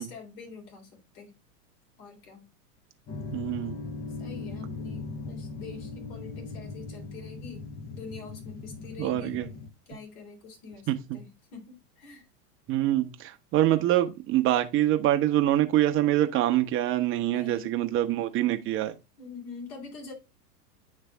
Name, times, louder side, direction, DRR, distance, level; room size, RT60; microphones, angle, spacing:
voice 1, 0.0-1.3 2.0-2.4 4.2-9.5 9.9-12.3 17.3-17.7 19.2-20.1, left 5 dB, 60° left, 3.6 m, -45 dB
sound 1, 3.1-9.7, left 3 dB, 20° left, 0.6 m, -39 dB
voice 2, 3.3-3.8 9.0-9.5 10.9-11.2 12.7-18.9, right 13 dB, 25° right, 0.8 m, -25 dB
9.3 x 3.3 x 3.3 m
hypercardioid pair, 115°, 47 cm